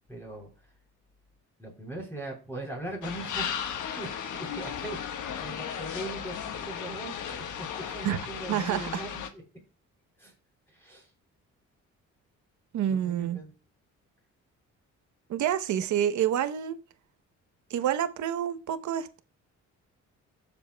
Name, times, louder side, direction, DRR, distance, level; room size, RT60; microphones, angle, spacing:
voice 1, 0.1-0.5 1.6-9.4 10.2-10.3 10.7-11.1 12.9-13.5, right 1 dB, 10° left, 3.6 m, -40 dB
sound 1, 3.0-9.3, left 8 dB, 80° left, 1.3 m, -35 dB
voice 2, 8.5-9.0 12.7-13.4 15.3-16.8 17.7-19.2, right 10 dB, 70° right, 0.9 m, -28 dB
17.5 x 7.2 x 2.2 m
cardioid pair, 90°, 30 cm